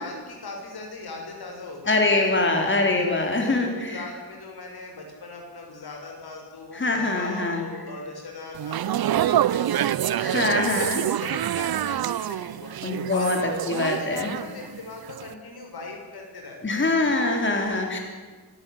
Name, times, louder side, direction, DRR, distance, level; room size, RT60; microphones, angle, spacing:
voice 1, 0.0-2.5 2.9-12.8 13.1-13.3 13.6-17.2, left 3 dB, 85° left, 1 dB, 6.3 m, -39 dB
voice 2, 1.9-4.0 6.7-7.6 10.2-11.0 12.8-13.4 13.7-14.3 16.6-18.0, left 2 dB, 30° left, 2 dB, 3.4 m, -23 dB
sound 1, 8.6-14.8 15.1-15.3, right 11 dB, 75° right, 0.6 m, -26 dB
25.0 x 13.0 x 10.0 m, 1.4 s
wide cardioid pair, 145°, 37 cm